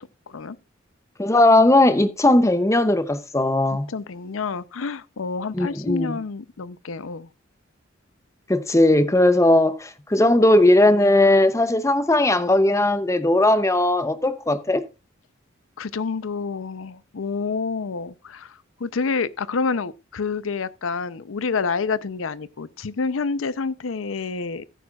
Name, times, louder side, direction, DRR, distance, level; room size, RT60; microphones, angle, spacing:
voice 1, 1.2-3.9 5.5-6.2 8.5-14.8, left 1 dB, 15° left, 0.6 m, -18 dB
voice 2, 3.9-7.3 15.8-24.6, left 4 dB, 80° left, 0.6 m, -28 dB
15.5 x 9.2 x 2.4 m
head